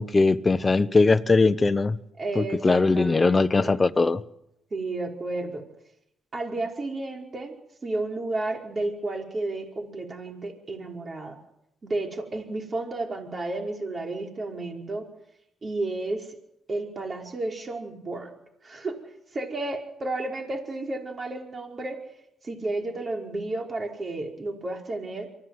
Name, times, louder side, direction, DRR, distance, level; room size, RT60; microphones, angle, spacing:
voice 1, 0.0-2.0 2.4-4.2, left 3 dB, 25° left, 11 dB, 1.0 m, -20 dB
voice 2, 2.2-3.8 4.7-5.6 6.3-7.5 7.8-11.4 11.8-15.1 15.6-16.3 16.7-18.3 18.6-19.0 19.3-22.0 22.4-25.3, right 2 dB, 35° right, 2 dB, 5.1 m, -32 dB
24.0 x 15.5 x 9.6 m, 0.82 s
cardioid pair, 75°, 0 cm